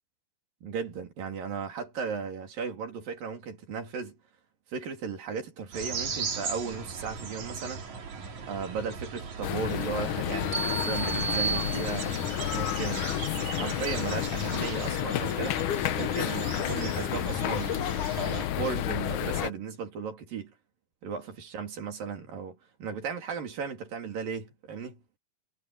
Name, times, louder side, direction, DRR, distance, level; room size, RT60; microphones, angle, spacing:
voice 1, 0.6-4.2 4.7-7.9 8.5-13.1 13.6-15.6 16.0-17.8 18.1-20.5 21.0-25.0, right 6 dB, 85° right, 4.9 m, -36 dB
sound 1, 5.7-18.5, right 5 dB, 60° right, 4.4 m, -38 dB
sound 2, 9.4-19.5, left 13 dB, 75° left, 2.3 m, -30 dB
sound 3, 10.5-12.4, right 6 dB, 30° right, 1.3 m, -32 dB
omnidirectional pair, 3.9 m